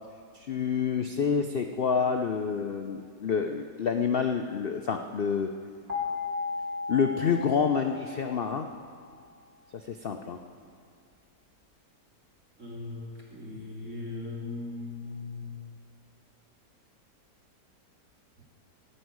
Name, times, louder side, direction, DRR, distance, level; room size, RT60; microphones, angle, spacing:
voice 1, 0.3-5.5 6.9-8.7 9.7-10.4, left 6 dB, 85° left, 5 dB, 0.5 m, -28 dB
sound 1, 5.9-8.8, left 4 dB, 20° right, 2.9 m, -35 dB
voice 2, 12.6-15.6, left 3 dB, 45° right, -4 dB, 3.0 m, -39 dB
16.5 x 5.5 x 9.5 m, 2.1 s
omnidirectional pair, 1.8 m